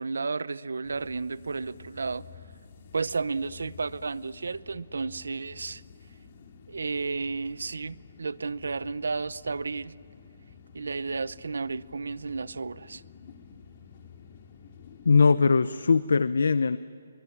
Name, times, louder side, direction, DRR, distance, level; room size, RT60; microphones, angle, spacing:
voice 1, 0.0-2.2 2.9-5.8 6.7-9.9 10.7-13.0, right 4 dB, 90° right, 19 dB, 0.7 m, -32 dB
sound 1, 0.8-15.2, left 6 dB, 40° left, 3.0 m, -51 dB
voice 2, 15.1-16.8, left 4 dB, 80° left, 15 dB, 0.7 m, -21 dB
25.5 x 23.0 x 9.8 m, 2.3 s
hypercardioid pair, 170°, 0 cm